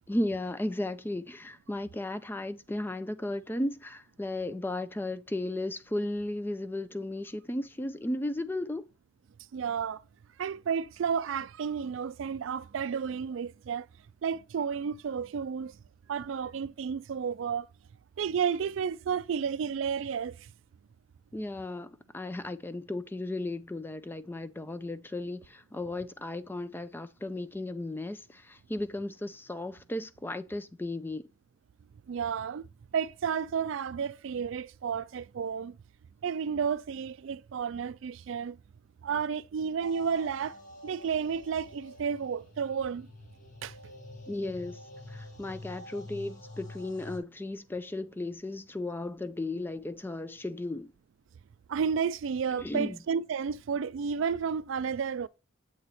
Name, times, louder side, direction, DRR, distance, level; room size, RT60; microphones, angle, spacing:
voice 1, 0.1-8.9 21.3-31.2 44.3-44.8 45.1-50.9 52.6-53.0, left 1 dB, 10° left, 0.3 m, -35 dB
voice 2, 9.5-10.0 10.4-13.9 14.2-15.7 16.1-17.7 18.2-20.5 32.1-32.7 32.9-35.8 36.2-38.6 39.0-40.6 40.8-43.1 43.6-43.8 51.7-55.3, right 6 dB, 70° right, 0.3 m, -32 dB
sound 1, 39.8-47.2, left 1 dB, 40° left, 1.3 m, -47 dB
7.8 x 4.1 x 2.9 m
head